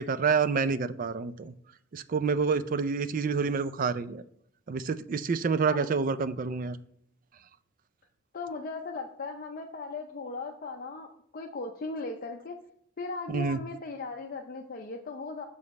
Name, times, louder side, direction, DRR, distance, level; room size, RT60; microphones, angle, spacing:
voice 1, 0.0-1.5 1.9-4.2 4.7-6.8 13.3-13.6, right 5 dB, 45° right, 13 dB, 0.4 m, -28 dB
voice 2, 8.3-11.1 11.3-12.6 13.0-15.4, left 3 dB, 45° left, 3 dB, 0.5 m, -37 dB
7.0 x 5.0 x 4.1 m, 0.68 s
head